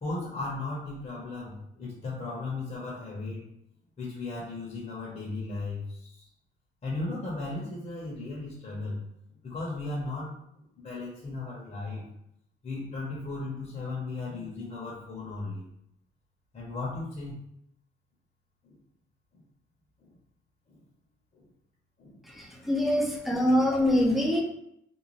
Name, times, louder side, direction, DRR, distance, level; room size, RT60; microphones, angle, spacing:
voice 1, 0.0-3.4 4.0-6.3 6.8-9.0 9.4-10.3 10.7-12.0 12.6-15.6 16.5-17.4 18.6-18.8 19.3-19.4 20.0-20.1 20.7-20.8 21.3-21.5 22.0-22.2 22.7-22.8 23.3-23.4, left 3 dB, 35° left, -6 dB, 0.9 m, -36 dB
voice 2, 22.2-24.4, left 1 dB, ahead, 0 dB, 0.6 m, -24 dB
2.6 x 2.2 x 3.1 m, 0.76 s
cardioid pair, 90°, 20 cm